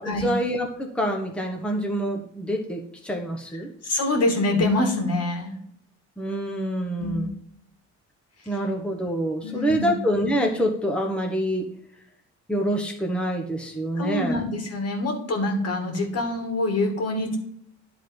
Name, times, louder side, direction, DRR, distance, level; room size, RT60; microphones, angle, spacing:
voice 1, 0.0-3.7 6.2-7.3 8.5-11.6 12.5-14.4, equal, 5° left, 1 dB, 1.1 m, -26 dB
voice 2, 3.8-5.5 7.0-7.2 9.4-9.9 14.0-17.4, left 2 dB, 55° left, 3 dB, 2.2 m, -25 dB
10.5 x 3.8 x 5.2 m, 0.71 s
cardioid pair, 90°, 30 cm